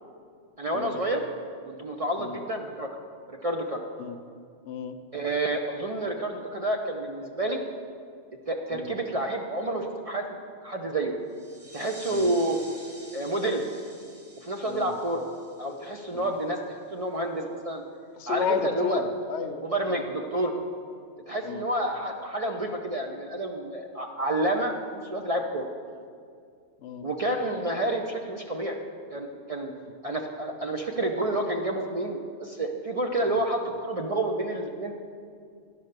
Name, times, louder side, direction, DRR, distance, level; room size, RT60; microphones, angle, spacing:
voice 1, 0.6-1.2 1.7-2.9 3.3-3.8 5.1-7.6 8.5-10.3 10.6-11.2 11.7-12.6 13.1-13.6 14.4-15.3 15.6-17.8 18.3-19.0 19.7-20.5 21.3-25.7 27.0-28.8 29.1-29.7 30.0-34.9, right 1 dB, 40° right, 2 dB, 0.5 m, -29 dB
voice 2, 4.6-5.0 8.7-8.9 12.1-12.3 14.6-14.9 16.1-16.3 18.2-20.0 21.4-21.6 26.8-27.1 29.7-29.8 33.3-33.4, left 7 dB, 75° left, 8 dB, 0.9 m, -33 dB
sound 1, 11.3-16.6, right 1 dB, 15° right, 1.0 m, -49 dB
11.0 x 5.5 x 6.6 m, 2.2 s
omnidirectional pair, 1.2 m